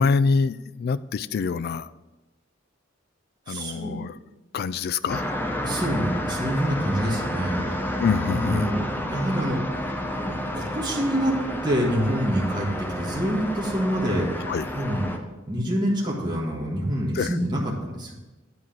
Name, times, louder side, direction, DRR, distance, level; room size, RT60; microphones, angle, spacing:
voice 1, 0.0-1.9 3.5-4.2 4.5-5.2 8.0-8.7 14.5-14.7 17.2-17.3, left 5 dB, 50° left, 0.3 m, -25 dB
voice 2, 3.5-4.0 5.6-8.9 9.1-11.4 11.6-14.3 14.7-15.1 15.5-18.2, equal, 25° right, 1.5 m, -26 dB
sound 1, 5.1-15.2, equal, 10° left, 0.7 m, -30 dB
9.7 x 4.7 x 5.9 m
head